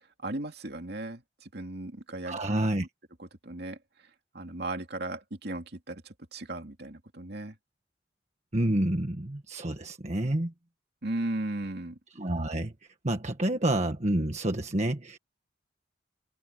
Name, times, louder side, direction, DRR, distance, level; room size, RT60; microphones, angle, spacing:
voice 1, 0.2-2.9 3.2-3.8 4.3-7.5 11.0-12.0, right 2 dB, 60° right, 2.8 m, -36 dB
voice 2, 2.2-2.9 8.5-10.5 12.2-12.7 13.0-15.2, right 1 dB, 40° right, 1.6 m, -28 dB
open air
head